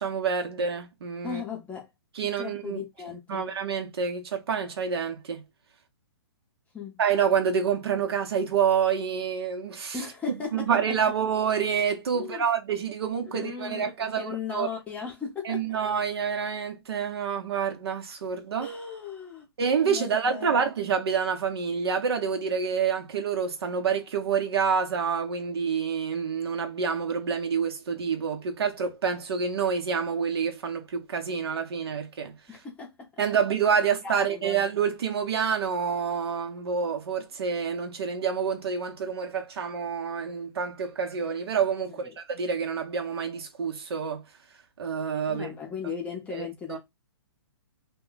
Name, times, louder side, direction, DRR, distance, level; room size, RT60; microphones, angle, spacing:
voice 1, 0.0-1.4 2.2-2.8 3.3-5.4 7.0-10.0 10.5-14.7 15.4-18.7 19.6-32.4 33.2-44.2 44.8-45.5 46.3-46.8, right 6 dB, 70° right, 0.8 m, -27 dB
voice 2, 1.2-1.9 2.4-3.5 6.7-7.0 9.9-11.0 12.1-12.5 13.3-15.8 18.6-19.5 19.8-20.6 32.5-33.2 34.0-34.7 42.0-42.1 45.3-46.8, left 6 dB, 10° left, 0.6 m, -37 dB
2.2 x 2.1 x 3.7 m
hypercardioid pair, 145°, 14 cm